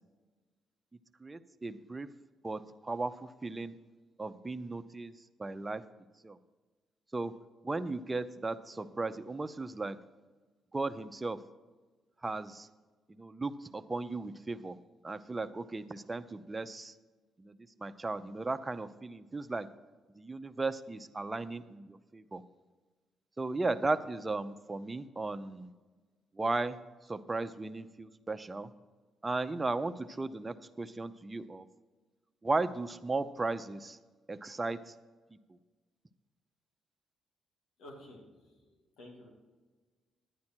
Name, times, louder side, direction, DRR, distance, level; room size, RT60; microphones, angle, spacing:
voice 1, 1.2-2.1 2.4-3.7 4.2-5.1 5.4-5.8 6.2-6.4 7.1-7.3 7.6-10.0 10.7-11.4 12.2-12.7 13.1-14.8 15.0-16.9 17.4-17.5 17.8-19.7 20.2-22.4 23.4-25.7 26.4-26.8 27.1-28.7 29.2-31.7 32.4-34.0 34.3-34.9, right 3 dB, 20° right, 10 dB, 0.6 m, -36 dB
voice 2, 37.8-39.3, left 1 dB, 85° left, 0 dB, 2.6 m, -52 dB
11.0 x 9.6 x 4.5 m, 1.3 s
cardioid pair, 90°, 0 cm